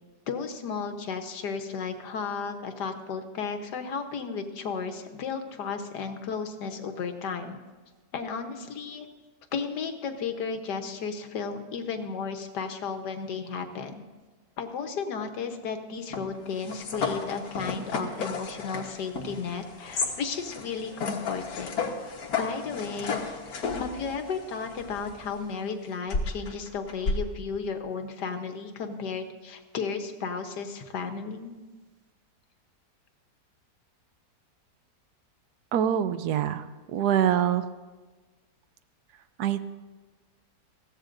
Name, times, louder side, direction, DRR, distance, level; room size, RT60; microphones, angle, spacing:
voice 1, 0.3-7.6 8.1-9.1 9.5-14.0 14.6-21.7 22.4-23.2 23.8-31.5, left 5 dB, 85° left, 7 dB, 1.6 m, -34 dB
sound 1, 16.1-25.4 26.1-27.2, left 4 dB, 65° left, 1.8 m, -33 dB
voice 2, 35.7-37.6 39.4-39.6, right 9 dB, 75° right, 12 dB, 1.2 m, -25 dB
21.0 x 15.5 x 2.6 m, 1.3 s
omnidirectional pair, 1.8 m